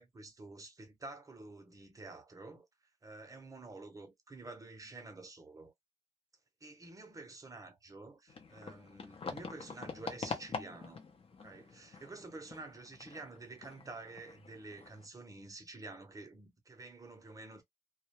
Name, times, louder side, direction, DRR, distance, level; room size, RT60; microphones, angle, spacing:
voice 1, 0.0-2.7 3.0-5.7 6.6-11.0 11.4-17.6, right 3 dB, 25° right, 0.7 m, -49 dB
sound 1, 8.3-15.1, left 5 dB, 45° left, 0.7 m, -46 dB
2.3 x 2.1 x 2.8 m
cardioid pair, 110°, 14 cm